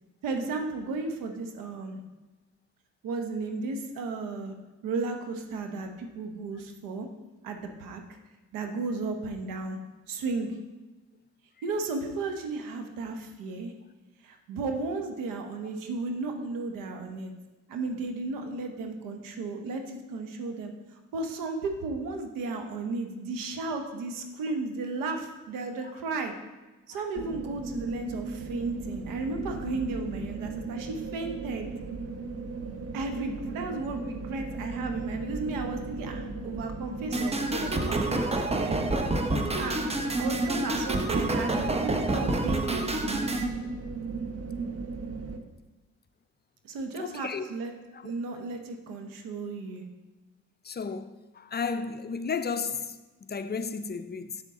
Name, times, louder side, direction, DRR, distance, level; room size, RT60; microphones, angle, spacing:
voice 1, 0.2-2.0 3.0-4.5 4.8-7.1 7.4-8.0 8.5-9.8 10.1-10.6 11.6-13.7 14.2-17.3 17.7-20.7 21.1-26.3 26.9-31.7 32.9-38.8 39.6-39.8 40.2-43.3 46.6-47.7 48.0-49.9, right 3 dB, 85° right, 0.9 m, -34 dB
sound 1, 27.1-45.4, right 4 dB, 50° right, 0.9 m, -37 dB
sound 2, 37.1-43.5, right 2 dB, 20° right, 0.8 m, -28 dB
voice 2, 47.0-47.5 47.9-48.0 50.6-54.4, left 5 dB, 30° left, 0.5 m, -33 dB
6.9 x 6.8 x 3.7 m
supercardioid pair, 60°, 32 cm